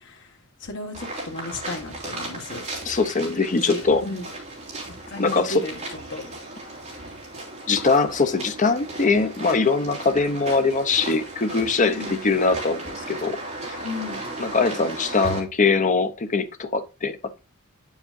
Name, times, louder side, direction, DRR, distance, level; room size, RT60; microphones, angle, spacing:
voice 1, 0.6-2.6 3.5-4.2 5.1-5.7 6.1-6.2 11.8-12.2 13.8-14.2, left 1 dB, 60° left, 1.6 m, -33 dB
sound 1, 0.9-15.4, right 2 dB, 35° right, 3.1 m, -36 dB
voice 2, 2.8-4.0 5.2-5.7 7.7-13.4 14.4-17.2, left 4 dB, 35° left, 0.7 m, -22 dB
8.8 x 7.2 x 2.6 m
head